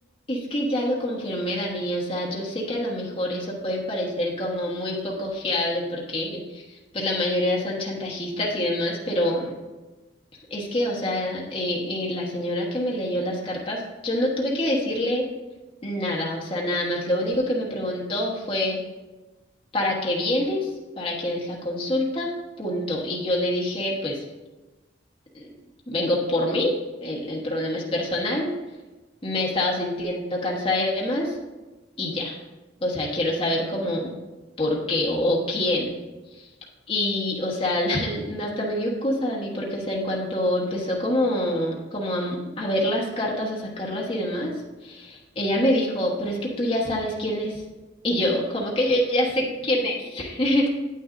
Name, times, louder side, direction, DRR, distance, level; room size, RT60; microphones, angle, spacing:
voice 1, 0.3-9.5 10.5-15.3 15.8-18.8 19.7-20.7 21.0-22.3 22.6-24.2 25.3-25.5 25.9-26.7 27.0-28.5 29.2-31.4 32.0-32.4 32.8-34.2 34.6-35.9 36.3-36.5 36.9-44.5 44.8-47.6 48.0-50.7, left 1 dB, 30° left, -3 dB, 1.2 m, -26 dB
9.3 x 8.5 x 2.6 m, 1.2 s
head